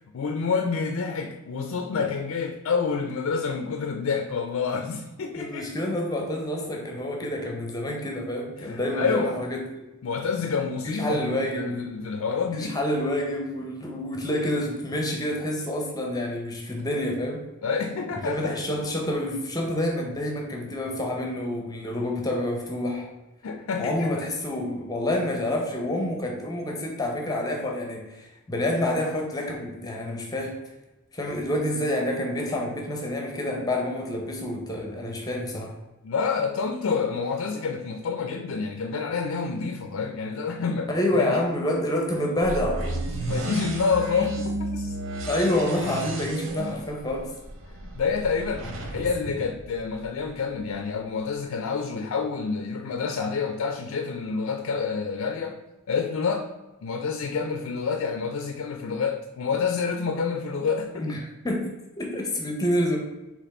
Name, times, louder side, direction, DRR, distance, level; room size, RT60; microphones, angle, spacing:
voice 1, 0.1-5.7 8.6-9.3 10.0-12.8 17.6-18.5 23.4-24.1 36.0-40.9 41.2-41.4 43.2-45.0 47.7-48.7 48.9-55.6 55.9-56.5 56.8-61.2, left 5 dB, 70° left, 5 dB, 0.4 m, -28 dB
voice 2, 5.4-9.8 10.8-12.0 12.5-17.5 18.2-23.1 23.8-30.6 31.1-35.8 40.9-43.2 45.3-47.3 48.9-49.4 60.9-63.0, left 1 dB, 15° left, 1 dB, 0.6 m, -28 dB
sound 1, 42.4-50.3, right 2 dB, 60° right, 0.6 m, -33 dB
4.2 x 2.9 x 4.2 m, 1.1 s
head